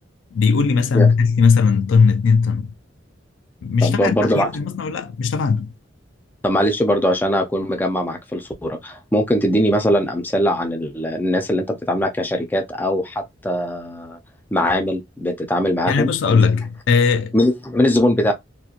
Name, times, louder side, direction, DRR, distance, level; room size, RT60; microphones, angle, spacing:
voice 1, 0.3-2.7 3.6-5.7 15.9-17.3, left 5 dB, 85° left, 0.4 m, -18 dB
voice 2, 3.8-4.5 6.4-14.2 14.5-16.5 17.3-18.3, equal, 10° left, 0.5 m, -21 dB
2.8 x 2.2 x 2.4 m
head